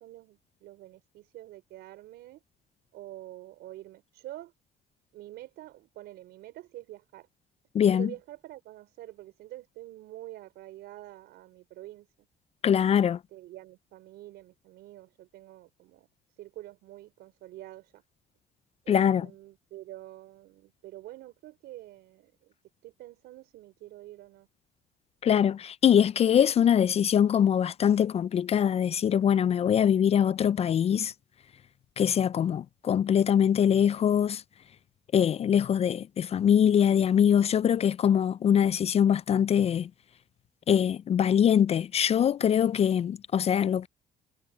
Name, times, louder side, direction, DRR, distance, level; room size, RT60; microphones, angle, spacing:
voice 1, 0.0-2.4 2.9-4.5 5.1-7.3 7.9-12.1 13.0-16.1 16.4-18.0 18.8-22.5 22.8-24.5, right 15 dB, 80° right, 4.8 m, -46 dB
voice 2, 7.7-8.1 12.6-13.2 18.9-19.3 25.2-31.1 32.0-34.4 35.1-39.9 40.7-43.9, left 9 dB, 35° left, 0.4 m, -23 dB
cardioid pair, 110°, 17 cm